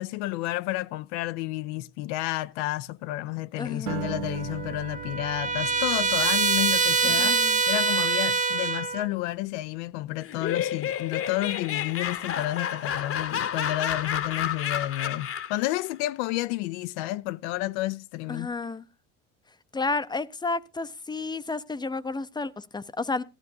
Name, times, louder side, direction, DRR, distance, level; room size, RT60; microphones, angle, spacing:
voice 1, 0.0-18.5, left 16 dB, 75° left, 0.5 m, -31 dB
voice 2, 3.6-4.2 7.0-7.6 18.3-18.9 19.7-23.2, left 3 dB, 10° left, 0.6 m, -32 dB
Acoustic guitar, 3.9-8.3, right 11 dB, 65° right, 1.2 m, -39 dB
Trumpet, 4.3-9.1, right 4 dB, 20° right, 0.8 m, -25 dB
Laughter, 10.2-15.7, left 9 dB, 40° left, 1.0 m, -30 dB
14.5 x 12.5 x 2.7 m
supercardioid pair, 95°, 35 cm